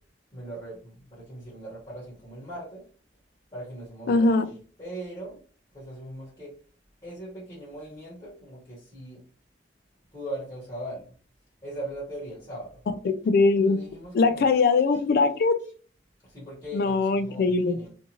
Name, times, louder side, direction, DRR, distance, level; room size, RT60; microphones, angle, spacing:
voice 1, 0.3-2.8 3.5-4.4 4.8-5.4 5.7-6.5 7.0-9.2 10.1-11.0 11.6-12.8 13.6-14.5 16.3-17.9, right 1 dB, 20° left, -8 dB, 1.1 m, -39 dB
voice 2, 4.1-4.5 13.0-13.8 14.1-15.5 16.7-17.8, left 3 dB, 55° left, 11 dB, 0.3 m, -21 dB
2.6 x 2.4 x 2.9 m, 0.41 s
head